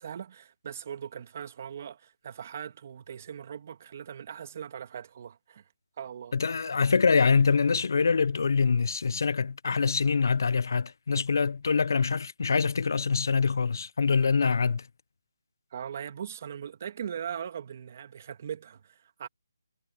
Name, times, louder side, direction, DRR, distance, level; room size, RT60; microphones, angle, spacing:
voice 1, 0.0-5.6 6.0-6.3 15.7-19.3, right 8 dB, 35° right, 2.2 m, -40 dB
voice 2, 6.3-14.9, left 5 dB, 60° left, 0.5 m, -25 dB
hypercardioid pair, 165°, 2 cm